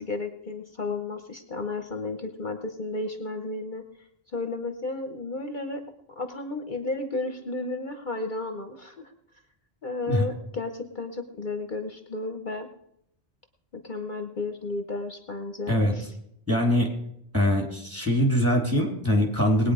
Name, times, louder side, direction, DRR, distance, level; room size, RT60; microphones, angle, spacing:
voice 1, 0.0-3.8 4.3-5.8 6.2-9.1 9.8-12.7 13.7-16.1, left 3 dB, 50° left, 7 dB, 1.0 m, -33 dB
voice 2, 16.5-16.9 17.3-19.7, equal, 10° right, 1 dB, 2.8 m, -23 dB
20.0 x 9.0 x 4.9 m, 0.75 s
omnidirectional pair, 1.1 m